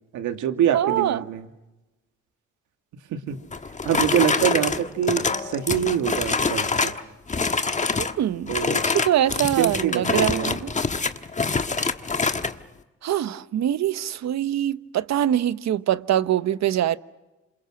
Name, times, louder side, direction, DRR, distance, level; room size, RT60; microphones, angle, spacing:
voice 1, 0.1-1.5 3.1-3.4 3.8-7.0 8.5-8.8 9.4-10.5, right 9 dB, 85° right, 2.2 m, -25 dB
voice 2, 0.7-1.2 8.0-8.6 8.9-10.7 13.0-17.0, right 11 dB, 65° right, 1.0 m, -23 dB
sound 1, 3.5-7.0 7.3-8.2 8.5-12.5, left 4 dB, 25° left, 1.4 m, -25 dB
28.5 x 27.0 x 6.3 m
cardioid pair, 90°, 30 cm